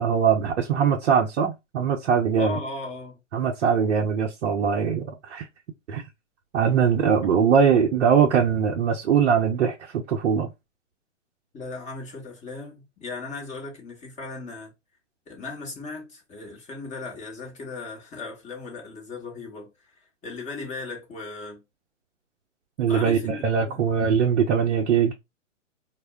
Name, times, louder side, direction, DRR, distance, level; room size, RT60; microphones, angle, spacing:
voice 1, 0.0-2.6 3.3-5.5 5.9-6.0 6.5-10.5 22.8-25.1, right 7 dB, 70° right, 0.6 m, -21 dB
voice 2, 2.4-3.2 7.4-7.5 11.5-14.7 15.3-19.7 20.2-21.6 22.8-23.8, left 3 dB, 20° left, 1.0 m, -37 dB
2.2 x 2.0 x 3.4 m
hypercardioid pair, 120°, 38 cm